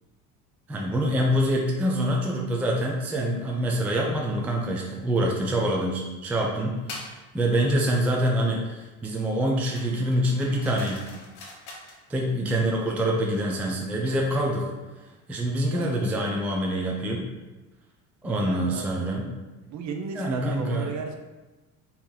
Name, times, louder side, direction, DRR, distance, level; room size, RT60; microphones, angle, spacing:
voice 1, 0.7-11.1 12.1-14.7 15.3-17.3 18.2-19.3 20.1-20.9, right 1 dB, 5° right, -1 dB, 0.3 m, -25 dB
sound 1, 6.9-7.2 9.7-12.0, left 2 dB, 65° left, 1.0 m, -42 dB
voice 2, 7.7-8.2 15.6-16.0 18.2-19.0 19.7-21.1, right 5 dB, 40° right, 4 dB, 0.6 m, -36 dB
2.9 x 2.7 x 3.8 m, 1.1 s
hypercardioid pair, 70°, 44 cm